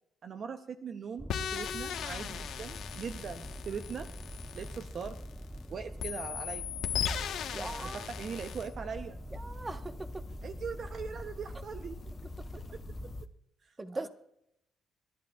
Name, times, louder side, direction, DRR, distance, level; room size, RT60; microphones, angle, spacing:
voice 1, 0.2-4.1 4.5-5.2 5.7-6.6 7.9-9.2 10.4-12.0 12.7-12.8 13.6-14.1, right 6 dB, 55° right, 8 dB, 0.7 m, -41 dB
sound 1, 1.2-13.2, equal, ahead, 0.5 m, -45 dB
sound 2, 1.3-5.6 6.0-8.7, left 9 dB, 80° left, 1.1 m, -38 dB
voice 2, 7.5-8.1 9.3-10.3 13.8-14.1, right 2 dB, 25° right, 8 dB, 1.1 m, -40 dB
sound 3, 8.3-13.3, left 4 dB, 45° left, 1.0 m, -49 dB
26.5 x 11.5 x 2.3 m, 0.77 s
cardioid pair, 90°, 0 cm